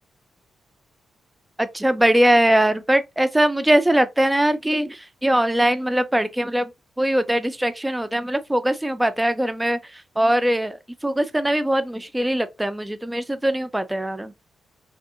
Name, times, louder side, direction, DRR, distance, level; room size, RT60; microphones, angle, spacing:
voice 1, 1.6-6.7 7.0-9.8 10.2-10.8 11.0-14.3, right 1 dB, 10° right, 0.5 m, -21 dB
2.6 x 2.5 x 2.5 m
hypercardioid pair, 45°, 0 cm